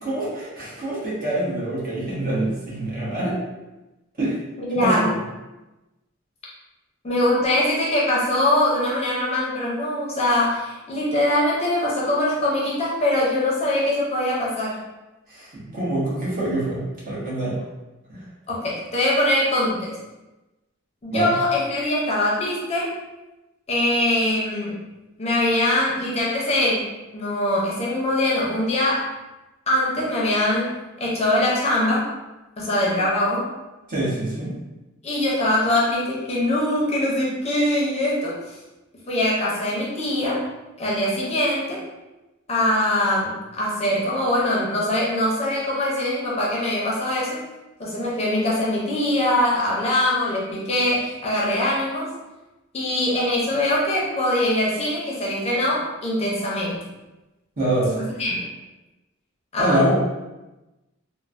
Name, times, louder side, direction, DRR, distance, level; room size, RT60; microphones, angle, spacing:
voice 1, 0.0-3.4 4.2-4.4 4.7-5.1 15.3-17.6 18.1-18.2 21.1-21.3 33.9-34.5 57.6-57.9 59.6-59.9, right 1 dB, 45° right, -7 dB, 1.0 m, -25 dB
voice 2, 4.6-5.2 7.0-14.8 18.5-20.0 21.0-22.9 23.7-24.7 25.2-26.9 27.1-29.1 29.7-30.7 31.0-32.1 32.6-33.5 35.0-38.6 39.1-40.4 40.8-41.8 42.5-47.4 47.8-52.1 52.7-56.8 58.0-58.5 59.5-59.8, left 1 dB, 30° left, -5 dB, 0.6 m, -22 dB
3.1 x 2.1 x 2.5 m, 1.0 s
head